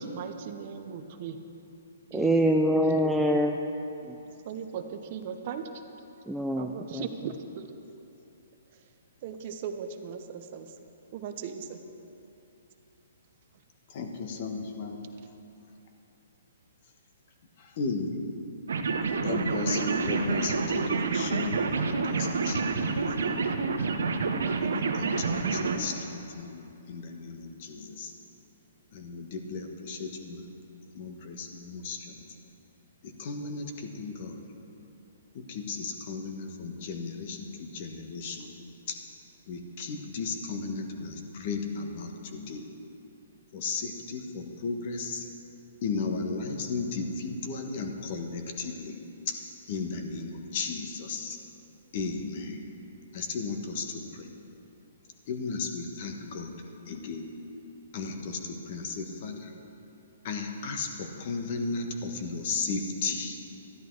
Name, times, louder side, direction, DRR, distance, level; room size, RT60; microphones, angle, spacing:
voice 1, 0.0-1.4 2.1-2.3 2.8-2.9 4.5-5.7 6.6-7.7 9.2-10.7 11.1-11.8, right 7 dB, 40° right, 7 dB, 0.8 m, -37 dB
voice 2, 2.1-3.6 4.1-4.2 6.3-7.3, right 1 dB, ahead, 2 dB, 0.4 m, -25 dB
voice 3, 13.9-14.9 17.8-18.1 19.2-21.6 21.8-23.4 24.6-28.1 28.9-30.4 30.9-32.0 33.0-34.4 35.5-38.5 39.5-42.6 43.5-45.2 45.8-49.0 49.3-49.4 49.7-51.4 51.9-52.6 53.1-53.8 54.2-54.3 55.3-56.6 56.9-57.3 57.9-58.4 58.7-59.5 60.2-63.4, left 4 dB, 45° left, 4 dB, 1.4 m, -35 dB
sound 1, 18.7-25.8, right 4 dB, 80° right, 1.0 m, -28 dB
13.0 x 11.0 x 4.7 m, 2.9 s
hypercardioid pair, 150°, 0 cm